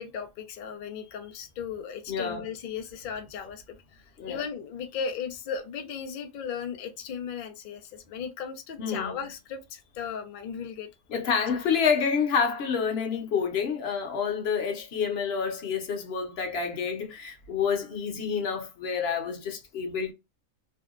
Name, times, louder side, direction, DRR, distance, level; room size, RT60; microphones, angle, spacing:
voice 1, 0.0-11.3, left 7 dB, 90° left, 0.4 m, -36 dB
voice 2, 2.1-2.4 4.2-4.4 8.8-9.2 11.1-20.1, left 6 dB, 55° left, 0.8 m, -28 dB
2.7 x 2.1 x 2.3 m
omnidirectional pair, 1.5 m